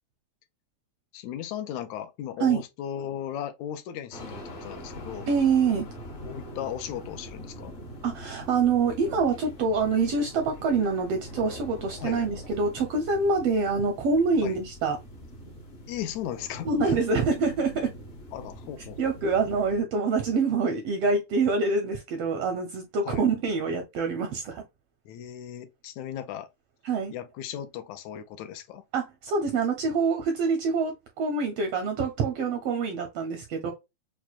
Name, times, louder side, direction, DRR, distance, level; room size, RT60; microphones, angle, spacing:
voice 1, 1.1-5.3 6.2-7.7 12.0-12.2 14.4-14.6 15.9-16.9 18.3-19.0 19.2-19.3 23.1-23.3 25.1-26.5 27.1-28.8, left 10 dB, 80° left, 1.8 m, -36 dB
sound 1, 4.1-19.8, equal, 55° left, 0.7 m, -43 dB
voice 2, 5.3-5.9 8.0-15.0 16.6-17.9 19.0-24.6 26.8-27.1 28.9-33.7, right 4 dB, 80° right, 1.4 m, -26 dB
5.9 x 2.2 x 2.3 m
omnidirectional pair, 3.3 m